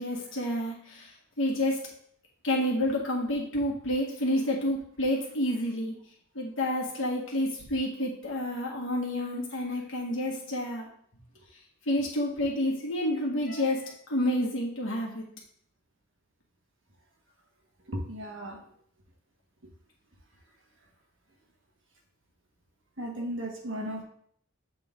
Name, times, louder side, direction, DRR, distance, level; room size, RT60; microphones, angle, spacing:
voice 1, 0.0-2.0 2.4-6.0 6.3-10.9 11.8-15.3, left 1 dB, 60° left, -3 dB, 1.6 m, -29 dB
voice 2, 18.1-18.6 23.0-24.0, right 1 dB, 55° right, 0 dB, 1.4 m, -35 dB
7.8 x 3.7 x 3.6 m, 0.62 s
head